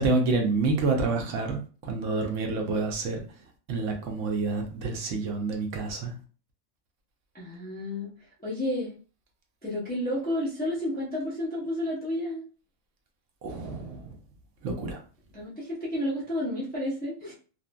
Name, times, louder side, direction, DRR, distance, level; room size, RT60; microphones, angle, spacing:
voice 1, 0.0-3.2 3.7-6.1 13.4-14.1 14.6-15.0, right 3 dB, 70° right, 2 dB, 0.9 m, -28 dB
voice 2, 7.3-8.1 8.4-8.9 9.6-12.4 15.3-17.3, left 1 dB, 10° left, -5 dB, 0.4 m, -31 dB
2.6 x 2.4 x 2.2 m, 0.38 s
omnidirectional pair, 1.4 m